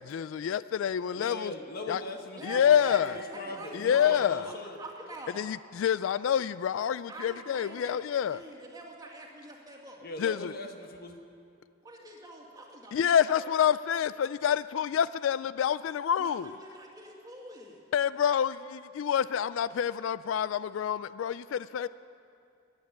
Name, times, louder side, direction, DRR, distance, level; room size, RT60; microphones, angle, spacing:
voice 1, 0.0-1.5 1.9-2.0 2.4-3.1 3.7-4.4 5.4-8.4 10.2-10.5 12.9-16.4 17.9-21.9, left 8 dB, 75° left, 0.3 m, -27 dB
voice 2, 1.1-4.8 10.0-11.2, left 2 dB, 50° left, 1.3 m, -41 dB
voice 3, 2.4-5.5 7.1-7.9 8.2-10.0 11.8-13.5 16.2-17.8, right 1 dB, 20° right, 2.3 m, -45 dB
14.5 x 10.5 x 9.4 m
head